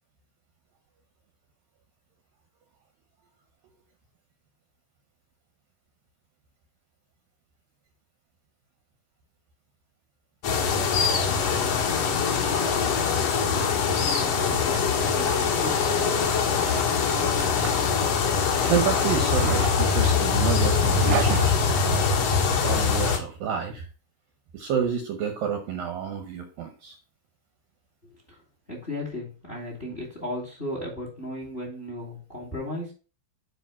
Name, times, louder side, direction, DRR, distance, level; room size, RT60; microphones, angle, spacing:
sound 1, 10.4-23.2, left 6 dB, 80° left, 1.4 m, -23 dB
Zipper (clothing), 13.7-22.3, right 12 dB, 90° right, 2.9 m, -37 dB
voice 1, 14.1-15.8 28.3-28.4 28.7-32.9, left 1 dB, 15° left, 0 dB, 2.0 m, -35 dB
voice 2, 18.6-22.1 22.5-23.9 24.5-27.0, right 7 dB, 75° right, 5 dB, 2.2 m, -29 dB
9.0 x 4.2 x 5.6 m, 0.35 s
omnidirectional pair, 4.9 m